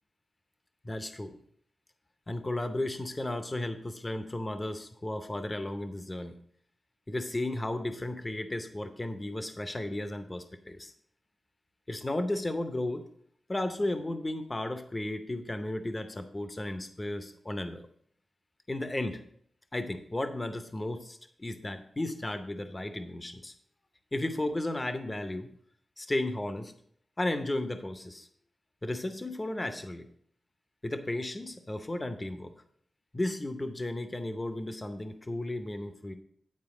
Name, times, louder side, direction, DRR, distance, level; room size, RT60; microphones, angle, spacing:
voice 1, 0.8-1.4 2.3-6.4 7.1-10.9 11.9-13.0 13.5-17.8 18.7-19.2 19.7-23.5 24.1-25.5 26.0-26.8 27.2-28.3 28.8-30.1 30.8-32.5 33.1-36.1, left 1 dB, 20° left, 8 dB, 0.6 m, -34 dB
9.6 x 4.6 x 5.8 m, 0.65 s
wide cardioid pair, 120°, 0 cm